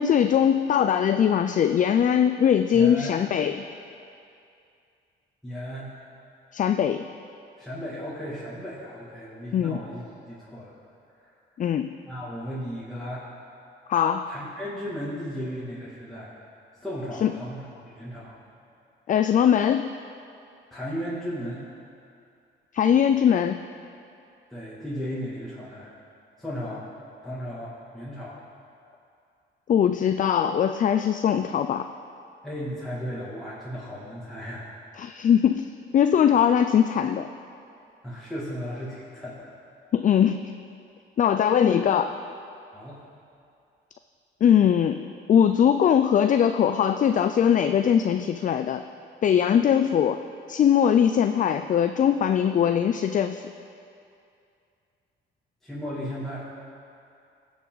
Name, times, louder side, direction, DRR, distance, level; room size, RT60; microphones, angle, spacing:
voice 1, 0.0-3.6 6.5-7.1 9.5-9.8 11.6-11.9 13.9-14.3 17.2-17.3 19.1-19.9 22.7-23.7 29.7-31.9 35.0-35.7 35.9-37.3 39.9-40.5 41.2-42.2 44.4-48.8 49.2-50.2 50.5-53.5, left 8 dB, 40° left, 8 dB, 0.4 m, -21 dB
voice 2, 2.7-3.2 5.4-5.9 7.6-10.7 12.0-13.3 14.3-16.4 16.8-18.4 20.7-21.6 24.5-25.9 26.4-26.9 27.2-28.4 32.4-34.7 38.0-39.7 42.7-43.0 55.6-56.5, equal, ahead, -9 dB, 2.4 m, -35 dB
16.5 x 7.2 x 4.0 m, 2.5 s
cardioid pair, 90°, 20 cm